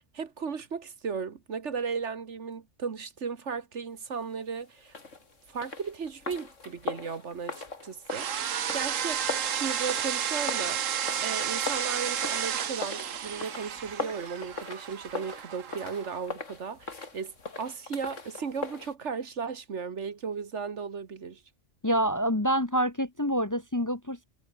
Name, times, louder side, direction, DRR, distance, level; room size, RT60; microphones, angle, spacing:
voice 1, 0.0-4.9 5.5-9.2 9.5-10.9 11.2-17.3 17.6-21.4, right 5 dB, 60° right, 1.7 m, -36 dB
sound 1, 4.9-18.9, left 3 dB, 70° left, 3.3 m, -40 dB
sound 2, 8.1-16.2, right 8 dB, 75° right, 1.4 m, -32 dB
voice 2, 21.8-24.2, equal, 15° left, 1.0 m, -27 dB
omnidirectional pair, 1.3 m